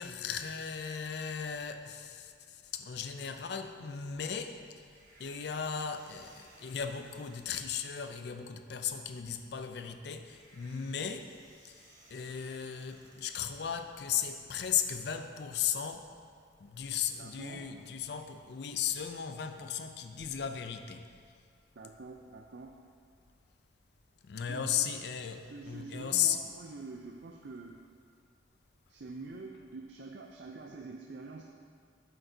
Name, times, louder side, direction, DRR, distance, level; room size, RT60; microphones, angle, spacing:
voice 1, 0.0-4.8 5.2-11.3 11.6-16.1 16.6-21.0 24.2-26.4, left 8 dB, 60° left, 7 dB, 0.4 m, -36 dB
sound 1, 4.9-14.3, right 1 dB, 45° right, 1.5 m, -61 dB
voice 2, 17.2-17.7 21.8-22.7 24.5-24.9 25.4-27.7 28.9-31.4, right 3 dB, 65° right, 1 dB, 0.5 m, -46 dB
9.0 x 7.7 x 2.7 m, 2.1 s
head